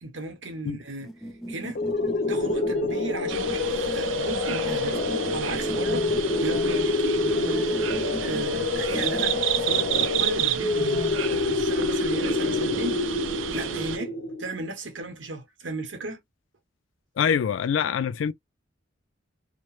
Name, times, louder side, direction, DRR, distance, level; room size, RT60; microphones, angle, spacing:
voice 1, 0.0-1.1 1.5-1.8 2.3-5.0 5.3-9.4 9.6-11.0 11.3-13.0 13.5-14.1 14.4-16.2, right 2 dB, 75° right, 1.0 m, -35 dB
sound 1, 1.0-10.8, right 1 dB, ahead, 0.5 m, -40 dB
sound 2, 1.8-14.6, left 3 dB, 55° left, 0.8 m, -27 dB
sound 3, 3.3-14.0, right 10 dB, 90° right, 0.5 m, -31 dB
voice 2, 17.2-18.3, left 7 dB, 85° left, 0.3 m, -24 dB
2.9 x 2.1 x 3.1 m
head